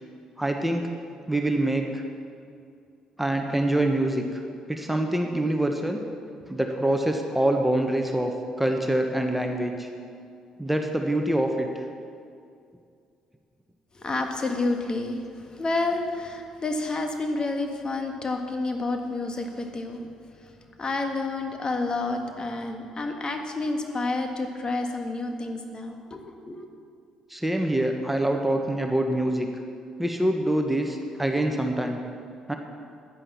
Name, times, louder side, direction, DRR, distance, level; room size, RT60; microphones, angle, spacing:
voice 1, 0.4-0.9 1.3-2.0 3.2-4.4 4.7-6.0 6.5-8.3 8.6-9.9 10.6-11.8 27.3-29.5 30.0-32.0 32.5-32.6, right 1 dB, 5° right, 3 dB, 1.3 m, -25 dB
voice 2, 13.9-20.0 20.4-26.7, left 2 dB, 35° left, 4 dB, 1.7 m, -29 dB
10.5 x 10.0 x 7.1 m, 2.4 s
hypercardioid pair, 50°, 2 cm